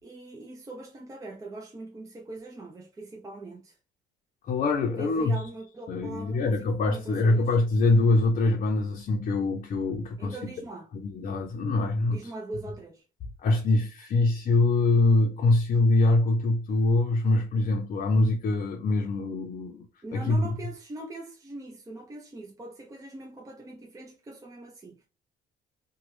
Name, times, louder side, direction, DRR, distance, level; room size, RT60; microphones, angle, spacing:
voice 1, 0.0-3.8 5.0-7.5 10.2-10.9 12.1-13.0 20.0-25.0, right 2 dB, 20° right, 0.6 m, -41 dB
voice 2, 4.5-5.4 5.9-10.5 11.0-12.3 13.4-19.8 20.1-20.5, left 2 dB, 50° left, 0.6 m, -24 dB
3.0 x 2.2 x 3.1 m
cardioid pair, 110°, 17 cm